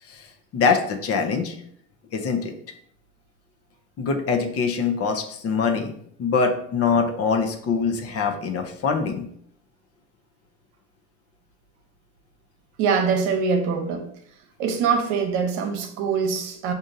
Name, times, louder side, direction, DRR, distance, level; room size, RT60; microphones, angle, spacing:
voice 1, 0.1-1.6 2.1-2.5 4.0-5.9 6.2-9.3, left 5 dB, 45° left, 5 dB, 0.6 m, -24 dB
voice 2, 12.8-14.0 14.6-16.7, right 5 dB, 80° right, 5 dB, 0.9 m, -23 dB
5.0 x 2.6 x 2.6 m, 0.65 s
supercardioid pair, 95°, 34 cm